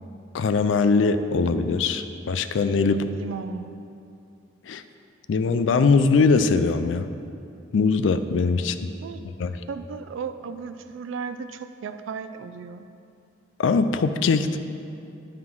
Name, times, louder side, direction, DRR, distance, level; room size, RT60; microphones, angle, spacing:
voice 1, 0.3-3.0 4.7-4.8 5.3-7.1 7.7-8.8 9.4-9.5 13.6-14.6, left 4 dB, 75° left, 11 dB, 0.4 m, -21 dB
voice 2, 2.9-3.7 9.0-9.2 9.7-12.9, right 5 dB, 80° right, 9 dB, 0.4 m, -35 dB
9.7 x 3.7 x 6.0 m, 2.6 s
head